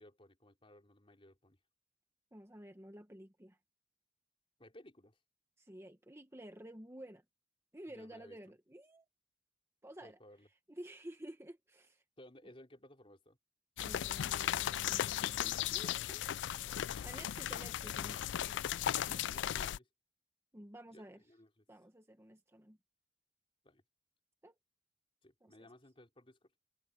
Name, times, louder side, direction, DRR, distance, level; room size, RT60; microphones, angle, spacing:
voice 1, 0.0-1.6 4.6-5.2 7.9-8.4 10.0-10.5 12.2-13.4 19.0-19.9 20.9-21.6 23.6-23.8 25.2-26.5, left 1 dB, 30° left, 3.6 m, -59 dB
voice 2, 2.3-3.6 5.6-7.2 7.7-9.1 9.8-10.2 10.7-12.0 13.8-16.3 17.0-18.7 19.1-19.6 20.5-21.2 21.7-22.8 24.4-24.5 25.4-25.7, right 1 dB, 15° right, 1.3 m, -52 dB
sound 1, 13.8-19.8, left 11 dB, 70° left, 0.3 m, -36 dB
head